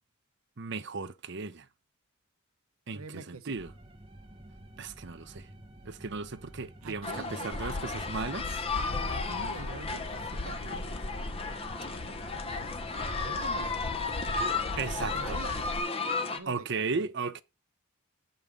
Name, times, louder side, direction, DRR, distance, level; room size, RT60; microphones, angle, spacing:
voice 1, 0.6-1.7 2.9-3.7 4.8-5.5 5.8-8.5 14.8-15.4 16.5-17.4, right 4 dB, 55° right, 0.7 m, -35 dB
voice 2, 2.9-3.6 6.8-7.5 8.0-8.2 8.8-11.3 13.0-14.2 15.0-15.7 16.2-17.1, right 3 dB, 80° right, 1.0 m, -46 dB
sound 1, 3.5-15.7, right 1 dB, 25° right, 1.3 m, -50 dB
sound 2, 7.0-16.4, left 4 dB, 25° left, 0.9 m, -34 dB
sound 3, 7.5-15.8, left 2 dB, 60° left, 0.8 m, -39 dB
7.2 x 5.4 x 6.6 m
head